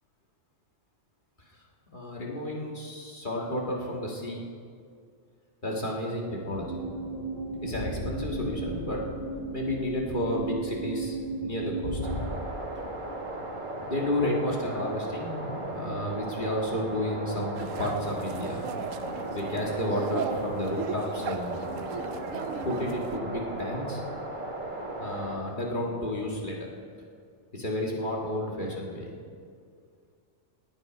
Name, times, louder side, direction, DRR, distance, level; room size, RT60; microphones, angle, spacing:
voice 1, 1.9-4.4 5.6-6.8 7.6-9.0 9.5-12.0 13.8-18.6 19.3-21.6 22.6-24.0 25.0-26.6 27.5-29.1, left 1 dB, 40° left, -2 dB, 2.0 m, -31 dB
sound 1, 6.5-12.3, right 2 dB, 65° left, 3.3 m, -34 dB
sound 2, 12.0-25.4, right 1 dB, 40° right, 1.9 m, -36 dB
sound 3, 17.5-23.2, right 7 dB, 85° right, 1.0 m, -38 dB
18.0 x 9.2 x 5.2 m, 2.2 s
omnidirectional pair, 1.3 m